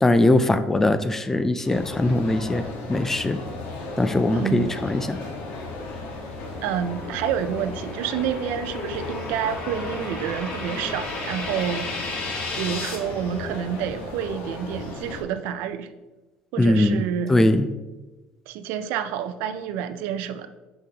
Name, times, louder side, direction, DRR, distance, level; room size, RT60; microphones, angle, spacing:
voice 1, 0.0-3.4 4.0-5.2 16.6-17.0 17.3-17.7, left 2 dB, 10° left, 11 dB, 0.3 m, -21 dB
sound 1, 1.6-15.2, left 2 dB, 85° left, 1.4 m, -35 dB
voice 2, 4.3-4.7 6.6-11.9 12.6-15.9 16.5-17.3 18.5-20.5, right 9 dB, 80° right, 11 dB, 0.4 m, -28 dB
sound 2, 6.1-12.9, left 3 dB, 45° left, 1.4 m, -35 dB
7.1 x 5.2 x 2.9 m, 1.1 s
cardioid pair, 135°, 3 cm